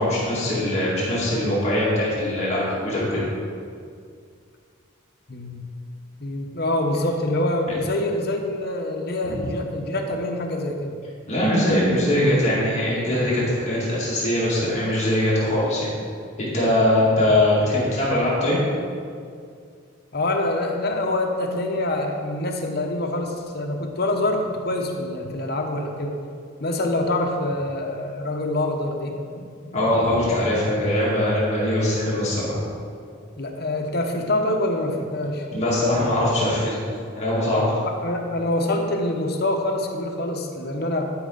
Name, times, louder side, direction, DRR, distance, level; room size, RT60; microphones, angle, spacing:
voice 1, 0.0-3.2 11.3-15.9 16.4-18.6 29.7-32.6 35.5-36.8 37.2-37.9, left 1 dB, 30° left, -8 dB, 2.1 m, -21 dB
voice 2, 5.3-5.6 6.2-11.0 20.1-26.2 26.6-29.5 33.4-35.6 37.8-41.0, left 1 dB, 50° left, 2 dB, 0.9 m, -25 dB
12.0 x 5.5 x 3.9 m, 2.3 s
head